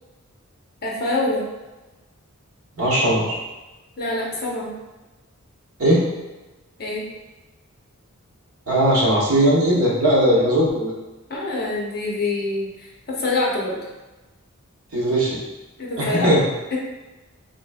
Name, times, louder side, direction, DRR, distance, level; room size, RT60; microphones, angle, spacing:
voice 1, 0.8-1.4 4.0-4.7 6.8-7.0 10.3-10.5 11.3-13.8 15.8-16.4 16.7-16.8, left 2 dB, 45° left, -4 dB, 0.8 m, -25 dB
voice 2, 2.8-3.4 5.8-6.0 8.7-10.9 14.9-15.4 16.0-16.4, right 1 dB, 70° right, -5 dB, 1.1 m, -18 dB
4.1 x 3.1 x 2.3 m, 1.1 s
head